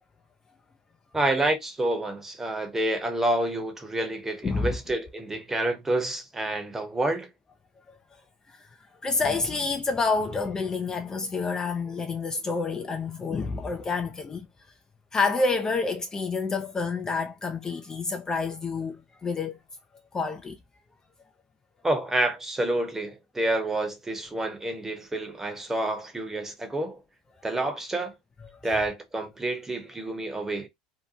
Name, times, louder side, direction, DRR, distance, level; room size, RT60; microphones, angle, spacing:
voice 1, 1.1-7.3 21.8-27.0 27.4-28.1 28.6-30.7, right 1 dB, 15° right, 0.9 m, -28 dB
voice 2, 4.4-4.7 7.9-8.0 8.5-8.8 9.0-14.5 15.1-19.6 20.1-20.6, left 4 dB, 20° left, 0.4 m, -28 dB
2.7 x 2.1 x 2.6 m
supercardioid pair, 95°, 3 cm